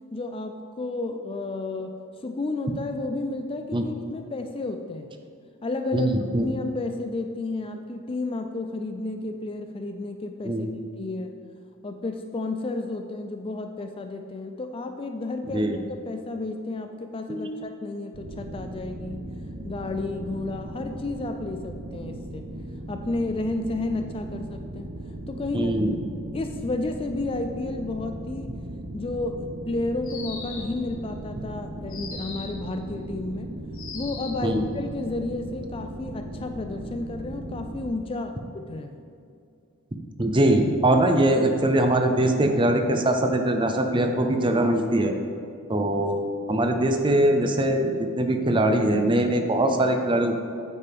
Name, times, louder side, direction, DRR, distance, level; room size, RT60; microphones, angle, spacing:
voice 1, 0.1-1.9 2.2-5.1 5.6-10.6 11.0-11.3 11.8-19.2 19.6-22.4 22.9-24.9 25.3-25.8 26.3-28.6 28.9-33.5 33.9-39.0, left 2 dB, 25° left, 6 dB, 0.4 m, -32 dB
voice 2, 5.9-6.5 10.4-10.7 15.5-15.8 17.3-17.6 25.5-26.0 34.4-34.6 40.2-45.1 45.7-46.2 46.5-47.9 48.2-50.4, right 1 dB, 20° right, 5 dB, 0.6 m, -22 dB
sound 1, 18.1-37.9, right 1 dB, 60° right, 0.8 m, -38 dB
sound 2, 30.0-30.8 31.9-32.6 33.7-34.5, left 5 dB, 65° left, 1.3 m, -39 dB
8.8 x 8.5 x 3.5 m, 2.5 s
head